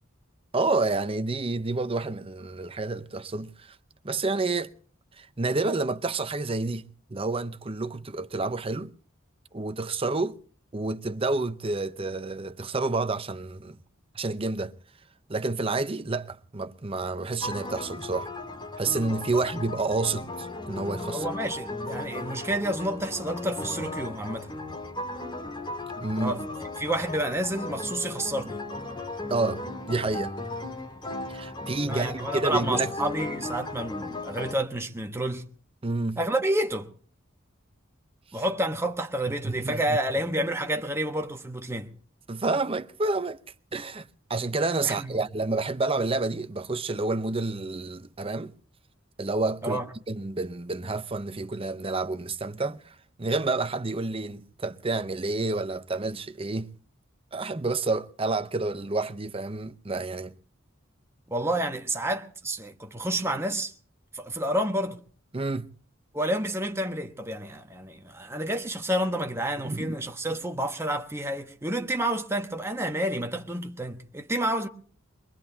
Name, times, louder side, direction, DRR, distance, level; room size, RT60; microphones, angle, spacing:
voice 1, 0.5-3.8 4.0-4.7 5.2-8.9 9.5-10.4 10.7-13.8 14.1-14.7 15.3-18.3 18.8-21.3 26.0-26.4 29.3-29.6 29.9-30.3 31.3-32.9 35.8-36.2 39.4-40.0 42.3-43.4 43.7-48.5 49.2-49.8 50.1-56.7 57.3-60.3 65.3-65.7 69.6-70.0, right 3 dB, 30° right, 0.7 m, -29 dB
sound 1, 17.4-34.5, left 2 dB, 25° left, 2.4 m, -36 dB
voice 2, 21.1-24.5 26.2-26.5 26.8-28.6 31.8-35.5 36.2-36.9 38.3-41.9 44.8-45.2 49.6-49.9 61.3-63.7 64.1-65.0 66.1-74.7, right 1 dB, 15° right, 1.2 m, -29 dB
22.5 x 22.5 x 2.8 m
head